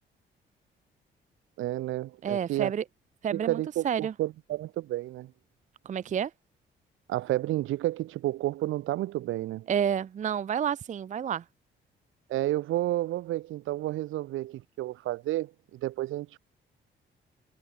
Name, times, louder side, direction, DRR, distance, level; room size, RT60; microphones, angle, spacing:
voice 1, 1.6-2.7 3.3-5.3 7.1-9.7 12.3-16.4, right 15 dB, 85° right, 2.5 m, -31 dB
voice 2, 2.2-2.8 3.2-4.1 5.8-6.3 9.7-11.4, right 8 dB, 40° right, 0.5 m, -29 dB
cardioid pair, 90°, 20 cm